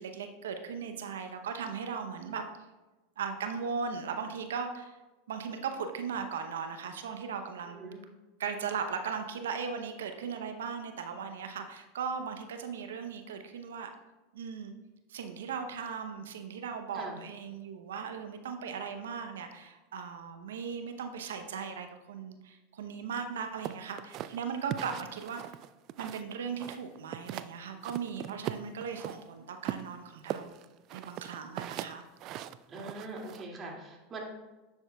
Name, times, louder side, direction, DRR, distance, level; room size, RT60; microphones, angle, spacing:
voice 1, 0.0-2.4 3.2-5.0 5.3-7.8 8.4-13.9 14.3-14.7 15.1-25.6 26.0-30.6 30.9-32.0, right 6 dB, 85° right, 7 dB, 0.7 m, -38 dB
voice 2, 7.7-8.0 16.9-17.2 32.7-34.2, right 2 dB, 30° right, -1 dB, 2.2 m, -42 dB
sound 1, 23.6-26.3 26.6-27.5 27.8-29.2 29.6-33.4, right 12 dB, 50° right, 0.3 m, -39 dB
10.5 x 7.2 x 2.3 m, 1.1 s
hypercardioid pair, 100°, 0 cm